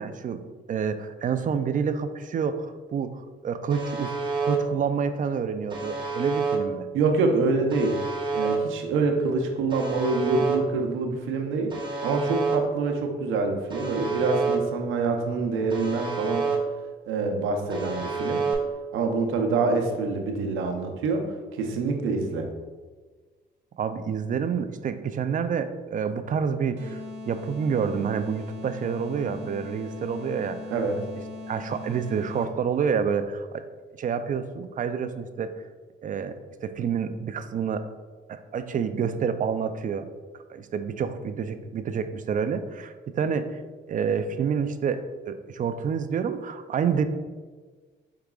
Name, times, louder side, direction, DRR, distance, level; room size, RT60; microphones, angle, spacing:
voice 1, 0.0-4.1 4.4-6.9 23.8-30.6 31.5-33.6 34.0-35.5 36.0-37.8 38.3-40.1 40.5-43.6 43.9-47.0, right 6 dB, 40° right, 10 dB, 0.4 m, -28 dB
Alarm, 3.7-4.6 5.7-6.6 7.7-8.6 9.7-10.6 11.7-12.6 13.7-14.6 15.7-16.6 17.7-18.5, right 4 dB, 25° right, 0.8 m, -29 dB
voice 2, 6.9-8.0 8.3-11.7 12.0-16.5 17.1-18.4 18.9-22.5 30.7-31.0, right 3 dB, 90° right, 3 dB, 0.7 m, -26 dB
sound 1, 26.8-32.7, left 2 dB, 65° right, 1.0 m, -40 dB
4.8 x 4.7 x 2.3 m, 1.4 s
cardioid pair, 90°, 20 cm